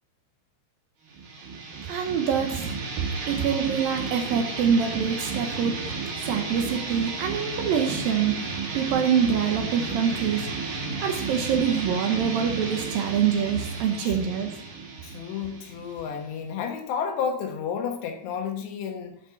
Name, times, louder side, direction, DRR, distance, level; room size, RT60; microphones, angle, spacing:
sound 1, 1.1-16.5, right 4 dB, 50° right, 3.1 m, -33 dB
voice 1, 1.9-5.8 6.2-8.4 8.7-10.7 11.0-14.5, right 7 dB, 75° right, 4 dB, 2.4 m, -25 dB
voice 2, 15.0-19.2, left 7 dB, 90° left, 3 dB, 3.6 m, -31 dB
12.0 x 4.9 x 5.8 m, 0.64 s
omnidirectional pair, 4.8 m